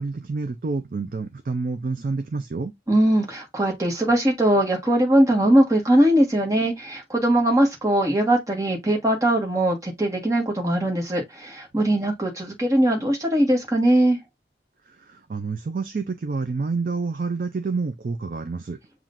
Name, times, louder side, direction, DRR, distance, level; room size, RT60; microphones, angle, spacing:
voice 1, 0.0-2.7 15.0-18.8, right 4 dB, 50° right, 0.4 m, -28 dB
voice 2, 2.9-14.2, right 1 dB, 20° right, 1.2 m, -20 dB
7.2 x 2.5 x 2.4 m
head